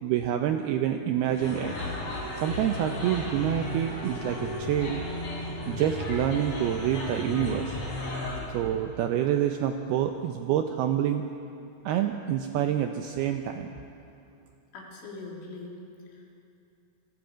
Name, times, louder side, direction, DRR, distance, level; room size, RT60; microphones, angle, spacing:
voice 1, 0.0-1.7 2.4-5.0 5.7-7.8 8.5-11.2 11.9-13.7, right 10 dB, 80° right, 6 dB, 2.3 m, -27 dB
sound 1, 1.3-8.4, left 1 dB, 35° left, 5.0 m, -34 dB
voice 2, 14.7-15.8 16.1-16.4, left 3 dB, 90° left, -2 dB, 5.7 m, -42 dB
27.0 x 22.0 x 5.2 m, 2.6 s
omnidirectional pair, 5.4 m